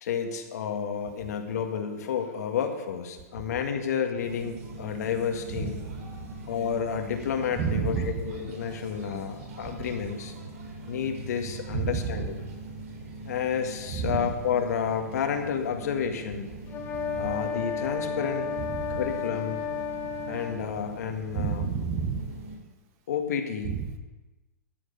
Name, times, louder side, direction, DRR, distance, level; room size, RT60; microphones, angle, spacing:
voice 1, 0.0-5.8 6.5-10.3 10.9-12.4 13.3-16.5 17.2-18.5 18.9-19.6 20.3-21.6 23.1-23.8, left 7 dB, 70° left, 4 dB, 1.7 m, -30 dB
sound 1, 4.2-22.6, right 2 dB, 55° right, 3.2 m, -42 dB
voice 2, 5.5-6.0 7.6-8.2 9.6-9.9 11.7-12.3 13.9-14.3 17.0-17.3 18.7-19.0 21.3-22.3 23.6-24.0, right 6 dB, 30° right, 7 dB, 1.1 m, -31 dB
sound 2, 16.7-20.6, left 7 dB, 20° left, 1.1 m, -32 dB
12.5 x 7.8 x 5.5 m, 1.2 s
hypercardioid pair, 160°, 9 cm